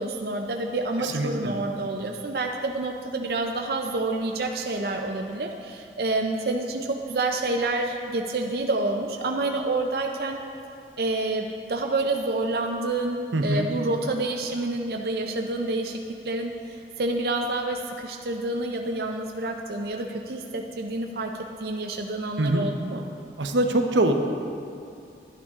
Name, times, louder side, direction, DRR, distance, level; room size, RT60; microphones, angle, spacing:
voice 1, 0.0-10.4 11.0-21.3 21.6-23.0, right 2 dB, 55° right, 2 dB, 0.5 m, -28 dB
voice 2, 1.0-1.6 13.3-13.7 22.4-22.7 23.4-24.1, right 1 dB, 90° right, 4 dB, 0.8 m, -23 dB
11.5 x 9.8 x 3.6 m, 2.6 s
head